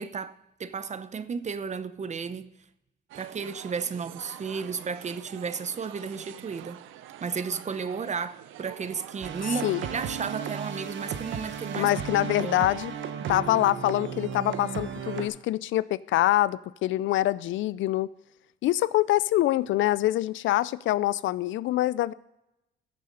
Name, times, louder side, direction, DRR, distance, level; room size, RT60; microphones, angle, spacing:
voice 1, 0.0-2.5 3.1-6.8 7.2-11.9 12.2-12.7, right 5 dB, 35° right, 0.7 m, -33 dB
sound 1, 3.1-10.4, right 12 dB, 90° right, 0.6 m, -46 dB
sound 2, 9.2-15.3, right 7 dB, 70° right, 1.1 m, -35 dB
voice 2, 11.7-12.9 13.3-18.1 18.6-22.1, left 15 dB, 75° left, 0.4 m, -25 dB
14.5 x 6.8 x 3.9 m
cardioid pair, 90°, 20 cm